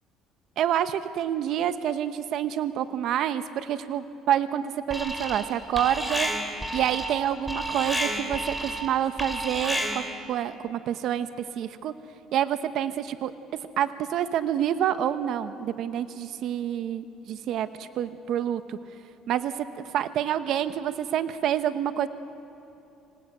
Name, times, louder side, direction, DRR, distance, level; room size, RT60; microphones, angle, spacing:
voice 1, 0.6-6.3 6.7-10.0 10.3-11.3 11.6-11.9 12.3-13.3 13.8-18.8 19.3-19.7 19.9-22.1, right 10 dB, 65° right, 11 dB, 0.9 m, -27 dB
Alarm, 4.9-5.5 5.8-10.2, right 1 dB, 5° right, 3.7 m, -31 dB
26.0 x 18.0 x 8.9 m, 2.9 s
supercardioid pair, 80°, 0 cm